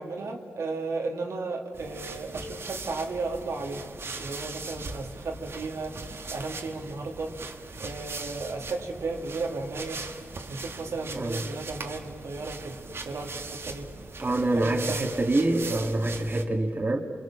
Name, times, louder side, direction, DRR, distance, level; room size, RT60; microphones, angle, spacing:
voice 1, 0.0-3.8 4.2-7.3 7.8-10.0 10.5-12.8 13.0-13.9 14.5-15.1 15.7-15.8, right 3 dB, 80° right, 1 dB, 2.2 m, -34 dB
sound 1, 1.7-16.4, right 3 dB, 60° right, 1.8 m, -40 dB
voice 2, 11.2-11.5 14.2-17.0, right 2 dB, 35° right, 3 dB, 2.1 m, -26 dB
27.5 x 22.0 x 7.2 m, 2.2 s
cardioid pair, 60°, 5 cm